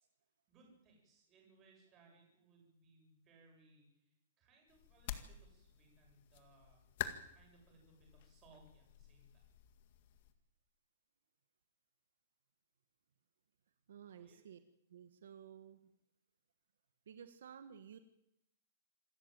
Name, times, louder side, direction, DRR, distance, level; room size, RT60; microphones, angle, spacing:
voice 1, 0.5-6.8 7.3-9.5 14.1-14.4, right 3 dB, 20° right, 0 dB, 7.9 m, -67 dB
sound 1, 4.7-10.3, left 10 dB, 40° left, 1.9 m, -49 dB
voice 2, 13.9-14.6 14.9-15.9 17.0-18.0, right 8 dB, 80° right, 10 dB, 1.6 m, -54 dB
27.0 x 13.5 x 9.1 m, 0.83 s
supercardioid pair, 175°, 0 cm